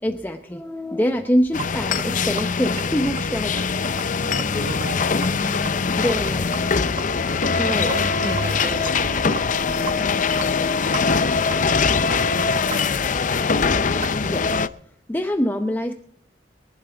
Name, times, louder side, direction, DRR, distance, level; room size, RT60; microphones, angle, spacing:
voice 1, 0.0-3.6 6.0-6.5 7.6-7.9 14.2-14.6 15.1-15.9, equal, 10° left, 5 dB, 0.7 m, -24 dB
Sink (filling or washing), 1.4-14.2, right 4 dB, 35° right, 1.1 m, -39 dB
sound 1, 1.5-14.7, left 5 dB, 45° left, 0.6 m, -22 dB
voice 2, 3.9-6.3 6.6-10.5, equal, 90° right, 2 dB, 5.9 m, -36 dB
23.5 x 11.5 x 3.4 m, 0.65 s
head